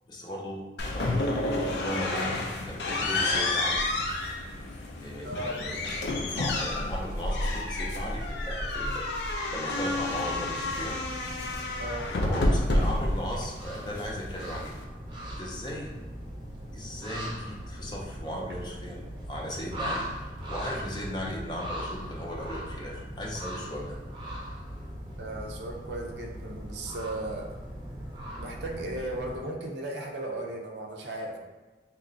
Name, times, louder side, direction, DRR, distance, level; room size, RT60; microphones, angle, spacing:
voice 1, 0.1-3.8 5.0-6.0 6.4-9.1 9.5-10.9 12.2-14.7 15.4-15.9 16.7-20.1 20.5-24.0, equal, 25° left, -2 dB, 0.5 m, -37 dB
sound 1, 0.8-14.8, left 2 dB, 75° left, 0.5 m, -30 dB
voice 2, 5.2-5.6 11.8-12.1 25.2-27.5 28.4-31.4, right 1 dB, 80° right, 2 dB, 0.6 m, -36 dB
sound 2, 9.7-29.4, equal, 25° right, 0.6 m, -39 dB
3.0 x 2.4 x 3.8 m, 1.2 s
head